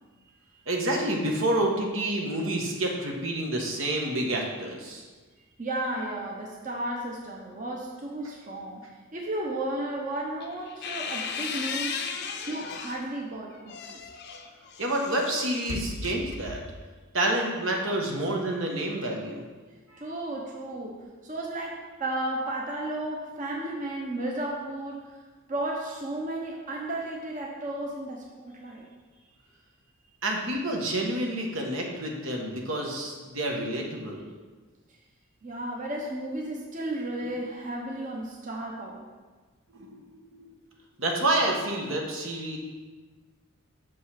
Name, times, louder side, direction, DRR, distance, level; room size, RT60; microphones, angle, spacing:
voice 1, 0.7-5.0 14.8-16.6 17.1-19.4 19.9-20.0 30.2-34.3 37.2-37.4 39.7-40.5 41.0-42.6, right 1 dB, 70° right, 0 dB, 1.3 m, -29 dB
voice 2, 5.6-8.8 9.1-11.9 12.5-14.1 20.0-21.0 21.2-25.2 25.5-28.9 35.4-39.1, right 1 dB, 40° right, -2 dB, 0.9 m, -33 dB
sound 1, 10.4-13.1 13.5-16.9, left 5 dB, 55° left, 0.6 m, -36 dB
6.6 x 5.4 x 5.8 m, 1.3 s
head